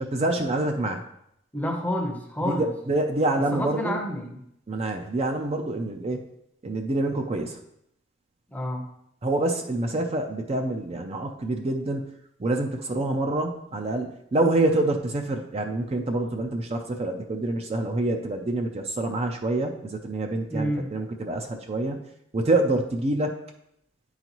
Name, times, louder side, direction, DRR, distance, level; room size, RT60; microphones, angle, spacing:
voice 1, 0.1-1.0 2.6-4.0 4.7-6.2 6.6-7.6 9.2-12.1 12.4-22.0 22.3-23.3, right 2 dB, 30° right, 4 dB, 0.5 m, -26 dB
voice 2, 1.5-2.7 3.5-4.4 8.5-8.8 20.5-20.9, equal, 10° left, 3 dB, 0.7 m, -29 dB
9.9 x 4.0 x 3.0 m, 0.76 s
head